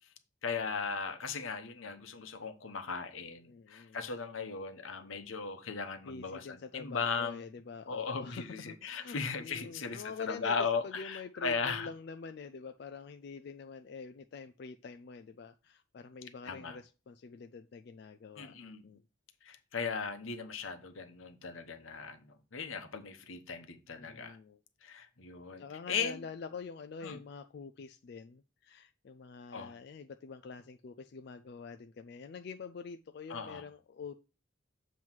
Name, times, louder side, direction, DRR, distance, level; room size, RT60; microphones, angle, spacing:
voice 1, 0.4-7.4 7.9-11.9 16.5-16.8 18.4-18.9 19.4-24.4 24.8-26.2 27.0-27.2 29.5-29.7 33.3-33.6, left 5 dB, 85° left, 0.9 m, -37 dB
voice 2, 3.5-4.0 6.1-10.6 10.8-18.6 18.8-19.0 24.0-24.6 25.6-34.1, left 5 dB, 55° left, 0.3 m, -46 dB
7.3 x 3.1 x 6.0 m
head